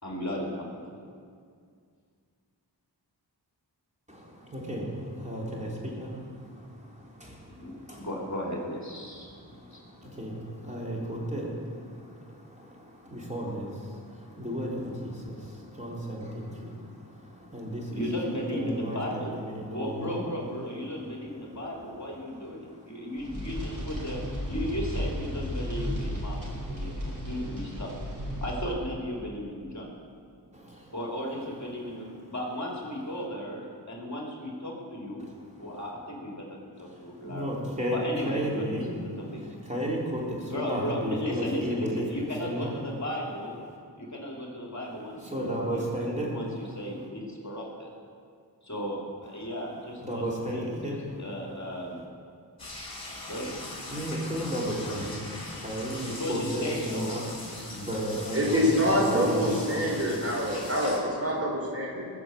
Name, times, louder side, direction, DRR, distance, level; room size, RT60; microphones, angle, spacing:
voice 1, 0.0-1.0 7.6-9.3 9.7-9.8 17.9-27.9 28.4-29.9 30.9-35.3 35.6-37.6 37.9-39.4 40.4-43.6 44.0-47.9 48.6-52.0 53.2-53.5 56.0-57.2, equal, 40° left, -2 dB, 2.9 m, -35 dB
voice 2, 4.1-8.1 9.3-18.0 18.5-20.2 22.7-22.9 26.8-27.0 30.5-30.9 35.2-35.3 36.9-39.0 39.3-42.7 45.2-46.4 50.0-51.0 53.9-57.3 57.6-59.9, equal, 15° right, -4 dB, 3.9 m, -34 dB
sound 1, 23.2-28.7, equal, 50° right, 4.9 m, -34 dB
sound 2, 52.6-61.0, left 2 dB, 55° left, 3.9 m, -40 dB
voice 3, 58.3-62.1, equal, 35° right, -2 dB, 3.9 m, -26 dB
20.5 x 6.9 x 7.8 m, 2.2 s
wide cardioid pair, 65°, 43 cm